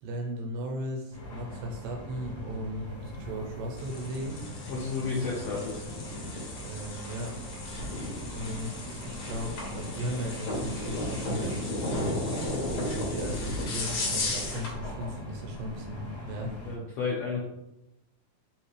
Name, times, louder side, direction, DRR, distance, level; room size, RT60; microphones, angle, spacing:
voice 1, 0.0-4.5 6.6-7.3 8.3-12.3 12.9-16.5, right 1 dB, 85° right, 2 dB, 2.5 m, -37 dB
sound 1, 1.1-16.8, left 1 dB, 40° left, 0.9 m, -41 dB
sound 2, 3.8-14.8, left 1 dB, 65° left, 1.4 m, -34 dB
voice 2, 4.7-5.8 16.6-17.4, left 4 dB, 85° left, -5 dB, 1.5 m, -31 dB
4.9 x 3.2 x 3.2 m, 0.90 s
omnidirectional pair, 4.0 m